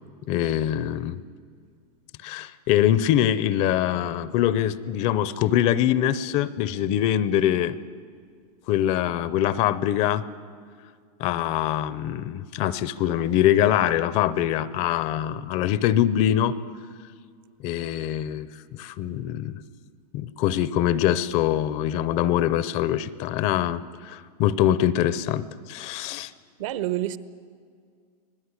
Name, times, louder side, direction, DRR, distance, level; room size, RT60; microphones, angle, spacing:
voice 1, 0.3-1.2 2.2-7.8 8.7-10.2 11.2-16.6 17.6-18.5 18.8-19.6 20.1-26.3, left 11 dB, 35° left, 0.6 m, -23 dB
voice 2, 26.6-27.2, right 14 dB, 55° right, 1.0 m, -27 dB
25.0 x 17.5 x 9.8 m
supercardioid pair, 165°, 20 cm